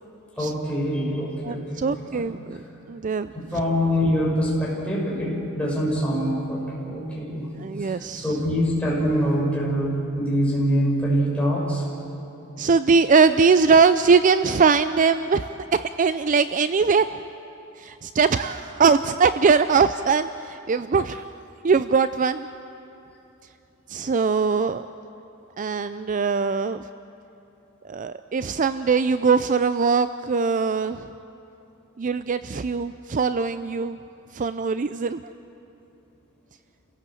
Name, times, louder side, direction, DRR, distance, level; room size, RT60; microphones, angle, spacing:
voice 1, 0.4-2.3 3.3-7.4 7.8-11.8, equal, 5° left, -4 dB, 5.7 m, -24 dB
voice 2, 1.4-2.6 2.9-3.3 7.6-8.4 12.6-17.1 17.8-21.3 21.6-22.5 23.9-24.9 25.6-26.8 27.8-31.1 32.0-34.0 34.3-35.2, right 5 dB, 40° right, 12 dB, 0.4 m, -21 dB
29.5 x 17.0 x 7.7 m, 2.8 s
head